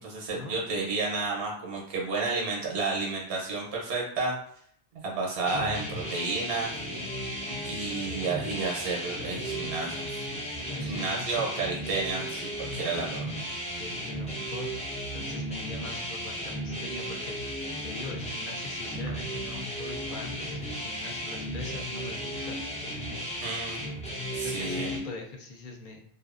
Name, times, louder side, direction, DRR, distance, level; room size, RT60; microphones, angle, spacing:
voice 1, 0.0-4.3 5.0-6.7 7.6-10.2 10.8-13.2 23.4-23.8 24.3-24.9, right 3 dB, 80° right, -2 dB, 1.0 m, -31 dB
sound 1, 5.5-25.0, equal, 10° left, 0.4 m, -35 dB
voice 2, 10.7-11.5 13.8-14.7 15.1-17.4 17.8-22.6 24.3-26.0, left 3 dB, 55° left, 1 dB, 0.7 m, -42 dB
2.6 x 2.3 x 2.4 m, 0.64 s
omnidirectional pair, 1.1 m